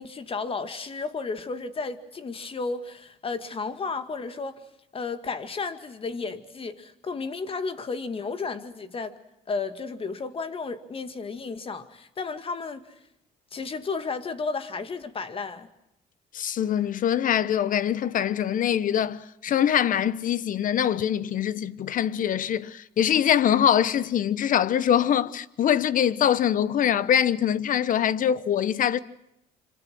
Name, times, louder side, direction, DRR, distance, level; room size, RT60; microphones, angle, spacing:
voice 1, 0.0-4.6 4.9-9.2 9.5-12.8 13.5-15.7, left 4 dB, 35° left, 2.2 m, -33 dB
voice 2, 16.3-29.0, left 9 dB, 50° left, 1.1 m, -23 dB
26.5 x 26.5 x 6.3 m
cardioid pair, 110°, 17 cm